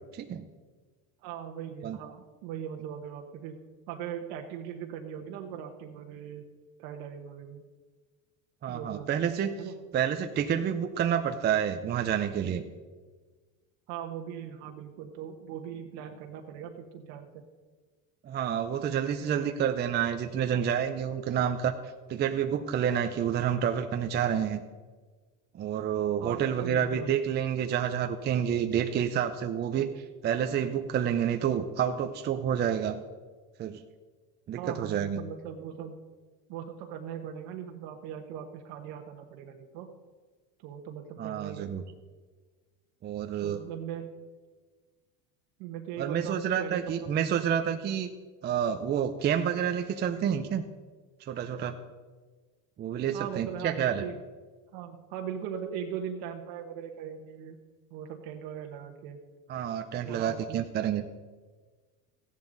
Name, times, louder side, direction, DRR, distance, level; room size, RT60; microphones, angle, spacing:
voice 1, 0.1-0.4 1.8-2.0 8.6-9.5 9.9-12.6 18.2-21.7 22.1-24.6 25.5-29.9 30.2-33.0 33.6-33.8 34.5-35.2 41.2-41.8 43.0-43.6 46.0-48.1 48.4-50.6 51.3-51.8 52.8-54.0 59.5-61.1, right 9 dB, 25° right, 6 dB, 0.5 m, -29 dB
voice 2, 1.2-3.6 3.9-6.5 6.8-7.6 8.7-9.3 9.6-9.7 13.9-17.4 26.2-27.2 29.7-29.8 34.6-35.9 36.5-39.9 40.6-41.7 43.4-44.1 45.6-47.1 53.1-54.2 54.7-57.6 57.9-59.2 60.0-60.7, right 8 dB, 70° right, 3 dB, 1.2 m, -40 dB
14.5 x 10.5 x 3.9 m, 1.4 s
supercardioid pair, 135°, 40 cm